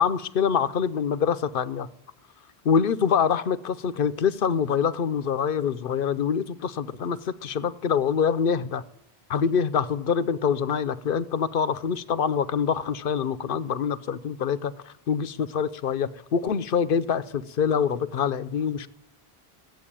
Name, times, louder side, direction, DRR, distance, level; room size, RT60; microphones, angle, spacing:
voice 1, 0.0-1.9 2.6-8.8 9.3-18.9, left 7 dB, 60° left, 0.8 m, -25 dB
14.5 x 8.0 x 10.0 m
omnidirectional pair, 1.1 m